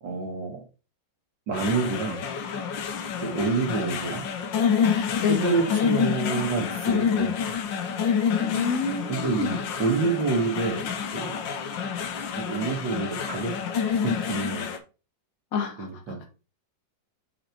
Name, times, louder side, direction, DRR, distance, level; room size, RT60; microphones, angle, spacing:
voice 1, 0.0-0.6 1.5-2.2 3.2-4.2 5.4-7.3 9.1-10.8 11.1-11.4 12.4-13.5 14.0-14.7 15.8-16.2, right 4 dB, 85° right, 2.2 m, -27 dB
sound 1, 1.5-14.8, left 7 dB, 85° left, 1.6 m, -28 dB
voice 2, 5.2-5.5 8.4-9.5 10.0-10.1 15.5-15.9, left 5 dB, 50° left, 1.7 m, -28 dB
6.5 x 4.0 x 4.4 m
omnidirectional pair, 2.0 m